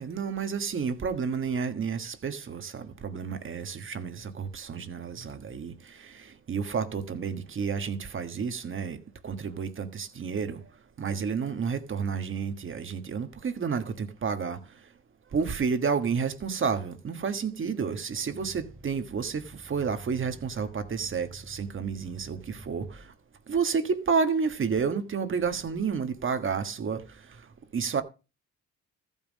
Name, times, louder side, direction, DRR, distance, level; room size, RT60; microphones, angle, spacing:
voice 1, 0.0-10.6 11.0-14.6 15.3-23.0 23.5-27.0 27.7-28.0, right 6 dB, 40° right, 1.4 m, -30 dB
Growling, 18.1-23.1, right 3 dB, ahead, 2.2 m, -48 dB
14.0 x 5.5 x 6.3 m
cardioid pair, 90°, 30 cm